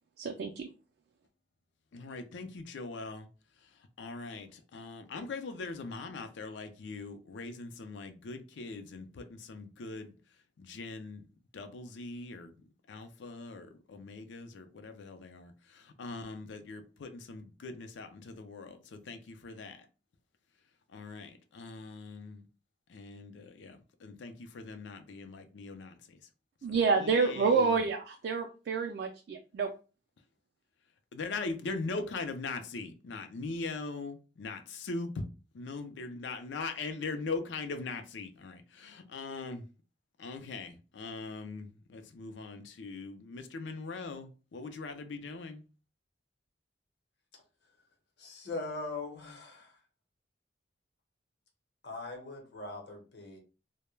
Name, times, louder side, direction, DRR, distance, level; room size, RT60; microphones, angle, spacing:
voice 1, 0.2-0.7 26.6-29.7, right 5 dB, 60° right, 0.3 m, -28 dB
voice 2, 1.9-3.3 4.0-10.1 10.6-11.2 11.5-12.5 12.9-19.9 20.9-22.4 22.9-26.2 27.0-27.8 31.1-35.2 35.5-39.7 40.2-45.6, left 3 dB, 90° left, 0.4 m, -41 dB
voice 3, 48.2-49.8 51.8-53.4, left 3 dB, 65° left, 0.8 m, -41 dB
2.2 x 2.1 x 3.1 m
head